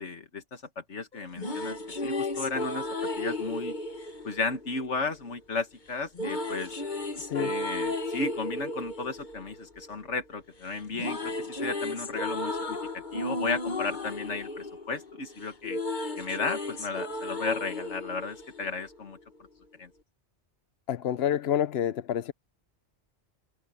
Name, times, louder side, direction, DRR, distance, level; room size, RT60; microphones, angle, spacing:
voice 1, 0.0-2.9 3.2-3.7 4.2-6.7 7.4-12.8 13.1-15.8 16.2-19.2 19.8-19.9, left 4 dB, 90° left, 2.0 m, -34 dB
sound 1, 1.1-5.3 6.1-10.4 10.7-19.2, left 2 dB, 45° left, 1.7 m, -34 dB
voice 2, 20.9-22.3, left 10 dB, 65° left, 0.9 m, -28 dB
omnidirectional pair, 1.2 m